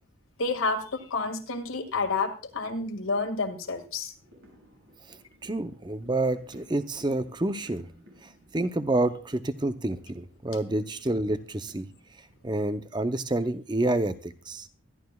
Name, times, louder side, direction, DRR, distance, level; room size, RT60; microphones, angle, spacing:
voice 1, 0.4-4.1, left 3 dB, 85° left, 6 dB, 2.0 m, -29 dB
sound 1, 4.2-13.5 13.9-14.0, equal, 85° right, 7.0 m, -57 dB
voice 2, 5.4-7.9 8.2-11.9 12.4-14.7, right 2 dB, 20° right, 10 dB, 0.6 m, -28 dB
24.0 x 11.5 x 2.3 m, 0.36 s
head